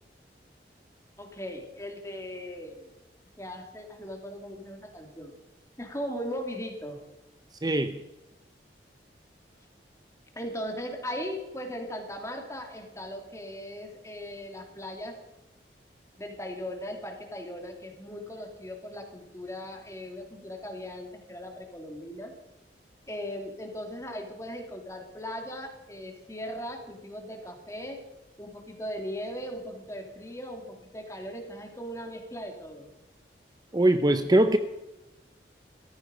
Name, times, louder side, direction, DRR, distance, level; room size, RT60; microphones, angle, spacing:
voice 1, 1.2-2.9 3.4-5.3 5.8-7.0 10.4-15.1 16.2-22.3 23.1-28.0 28.4-32.9, equal, 15° left, 3 dB, 2.6 m, -38 dB
voice 2, 7.6-8.0 33.7-34.6, right 1 dB, 25° right, 9 dB, 0.6 m, -22 dB
17.5 x 14.5 x 5.1 m, 1.0 s
head